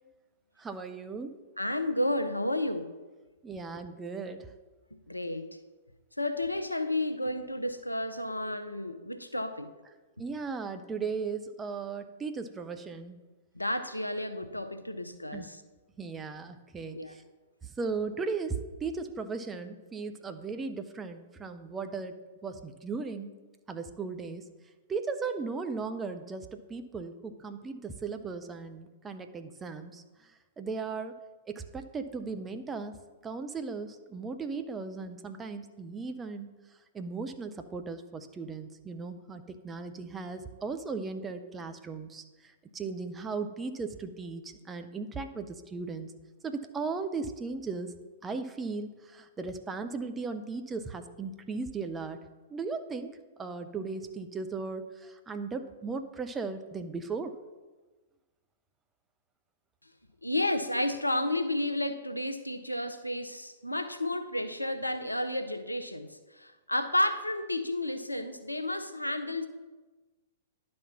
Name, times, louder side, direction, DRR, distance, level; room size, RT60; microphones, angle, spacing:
voice 1, 0.6-1.4 3.4-4.5 10.2-13.2 15.3-15.5 16.0-17.2 17.8-22.2 22.4-23.3 23.7-24.5 24.9-30.0 30.6-31.2 31.5-33.0 33.2-36.5 36.9-42.2 42.7-46.1 46.4-47.9 48.2-52.2 52.5-53.1 53.4-57.3, right 4 dB, 15° right, 8 dB, 0.6 m, -37 dB
voice 2, 1.6-2.9 5.1-5.5 6.2-9.7 13.5-15.6 16.9-17.1 60.2-69.5, left 1 dB, 85° left, 10 dB, 0.6 m, -31 dB
10.5 x 4.3 x 5.8 m, 1.2 s
figure-of-eight pair, 105°, 0 cm